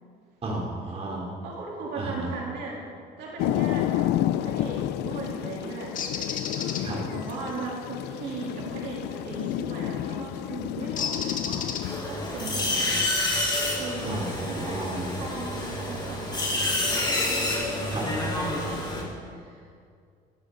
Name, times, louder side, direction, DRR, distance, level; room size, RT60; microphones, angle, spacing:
voice 1, 0.4-1.3 2.0-2.3 6.8-7.0 14.1-15.2 17.9-18.0, right 2 dB, 35° right, -2 dB, 3.3 m, -33 dB
voice 2, 1.4-2.8 3.2-4.1 4.4-6.0 6.6-11.8 12.1-13.0 13.8-14.8 15.2-19.7, right 3 dB, 75° right, -4 dB, 3.3 m, -38 dB
sound 1, 3.4-12.0, left 13 dB, 85° left, 0.4 m, -30 dB
Bird, 6.0-6.8 9.4-9.7 11.0-12.2, left 6 dB, 50° left, 1.5 m, -32 dB
sound 2, 11.8-19.0, left 2 dB, 25° left, 4.2 m, -28 dB
15.5 x 13.0 x 3.9 m, 2.2 s
cardioid pair, 110°, 17 cm